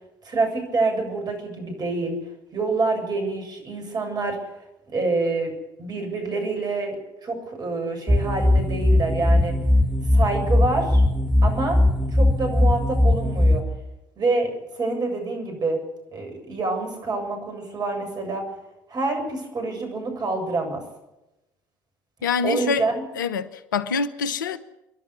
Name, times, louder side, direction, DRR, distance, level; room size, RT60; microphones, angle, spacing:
voice 1, 0.2-2.2 2.5-4.4 4.9-5.5 5.8-9.6 10.1-11.0 11.4-11.8 12.1-13.6 14.2-15.8 16.1-18.5 18.9-20.8 22.4-22.9, right 3 dB, 40° right, 7.7 m, -26 dB
sound 1, 8.1-13.6, left 1 dB, 5° right, 3.4 m, -19 dB
voice 2, 22.2-22.9 23.1-24.6, left 5 dB, 85° left, 0.9 m, -25 dB
28.0 x 11.5 x 9.7 m
hypercardioid pair, 55°, 10 cm